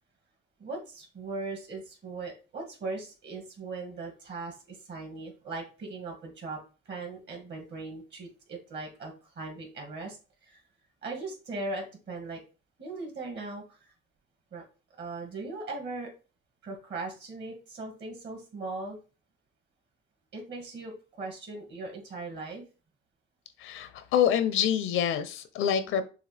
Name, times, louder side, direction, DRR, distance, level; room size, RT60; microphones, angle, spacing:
voice 1, 0.6-6.6 6.9-10.2 10.4-10.6 11.0-12.4 12.8-13.9 14.5-14.6 15.0-16.1 16.6-19.0 20.3-22.6, right 3 dB, 60° right, 1 dB, 2.2 m, -39 dB
voice 2, 23.6-26.1, left 9 dB, 85° left, 12 dB, 0.6 m, -26 dB
6.5 x 2.4 x 3.3 m, 0.34 s
cardioid pair, 90°, 20 cm